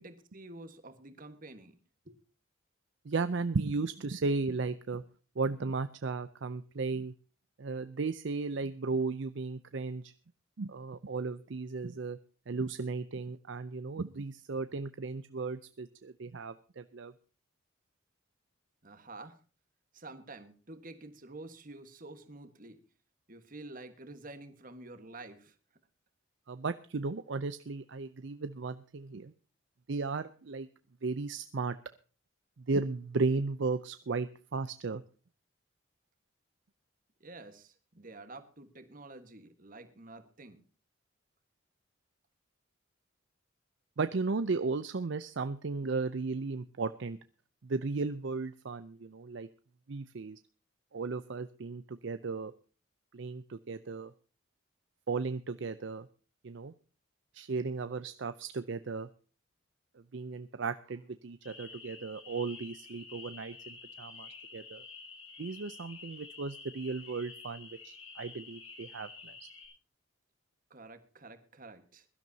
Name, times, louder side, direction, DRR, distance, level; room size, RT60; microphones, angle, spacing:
voice 1, 0.0-1.7 2.0-2.2 18.8-19.4 19.9-22.8 23.3-25.6 37.2-40.6 70.7-72.1, right 2 dB, 40° right, 9 dB, 1.4 m, -49 dB
voice 2, 3.1-5.0 5.4-7.1 7.6-10.1 10.6-12.2 12.5-17.1 26.5-29.3 29.9-30.7 31.0-31.7 32.7-35.0 44.0-47.2 47.6-49.5 49.9-50.4 50.9-52.5 53.1-54.1 55.1-56.1 56.4-56.7 57.3-59.1 60.1-64.8 65.4-69.3, right 4 dB, 60° right, 11 dB, 0.5 m, -35 dB
sound 1, 61.4-69.7, left 4 dB, 75° left, 6.7 m, -50 dB
22.0 x 12.5 x 2.8 m, 0.37 s
head